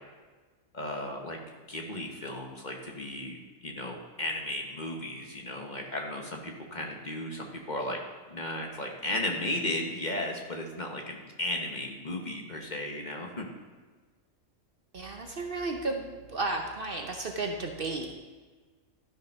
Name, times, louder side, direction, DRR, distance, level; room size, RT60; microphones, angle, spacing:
voice 1, 0.7-1.4 1.7-8.0 8.3-13.5, left 1 dB, 35° left, 1 dB, 1.1 m, -35 dB
voice 2, 14.9-18.2, right 3 dB, 50° right, 3 dB, 0.9 m, -33 dB
12.5 x 5.5 x 5.3 m, 1.4 s
omnidirectional pair, 1.4 m